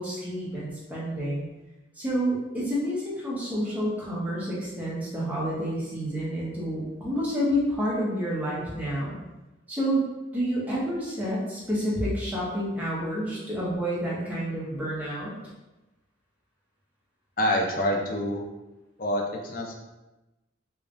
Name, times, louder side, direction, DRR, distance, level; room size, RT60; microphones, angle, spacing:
voice 1, 0.0-1.5 2.0-9.2 9.7-10.0 10.3-15.4, equal, 10° right, -7 dB, 0.9 m, -29 dB
voice 2, 17.4-18.4 19.0-19.8, left 1 dB, 45° left, 1 dB, 0.5 m, -26 dB
5.0 x 2.3 x 2.6 m, 1.0 s
head